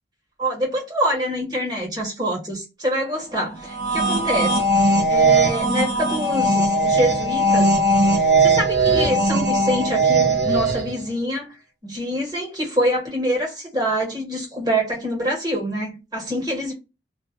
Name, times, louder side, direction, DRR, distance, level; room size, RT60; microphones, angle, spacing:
voice 1, 0.4-4.8 5.1-7.7 8.4-11.5 11.8-16.7, equal, 20° right, 1.3 m, -25 dB
sound 1, 3.6-11.0, right 2 dB, 70° right, 1.1 m, -19 dB
2.6 x 2.4 x 2.2 m
head